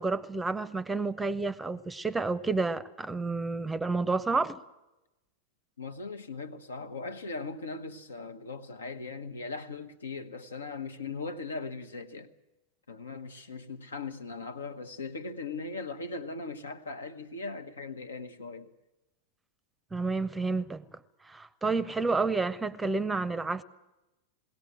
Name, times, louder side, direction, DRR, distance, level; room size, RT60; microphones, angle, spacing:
voice 1, 0.0-4.6 19.9-20.8 21.3-23.6, right 3 dB, 10° right, 0.7 m, -30 dB
voice 2, 5.8-12.3 12.9-18.7, left 3 dB, 70° left, 1.0 m, -39 dB
21.0 x 17.0 x 9.0 m
figure-of-eight pair, 90°, 0 cm